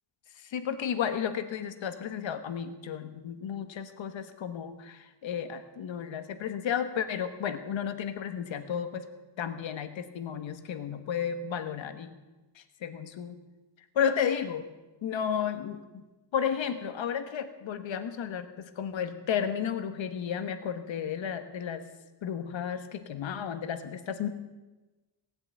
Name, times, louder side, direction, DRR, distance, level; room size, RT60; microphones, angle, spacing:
voice 1, 0.4-9.1 9.4-12.1 12.5-13.3 13.9-14.7 15.0-15.8 16.3-21.9 22.2-24.3, left 8 dB, 85° left, 9 dB, 1.4 m, -33 dB
18.0 x 7.8 x 9.2 m, 1.1 s
wide cardioid pair, 170°, 45 cm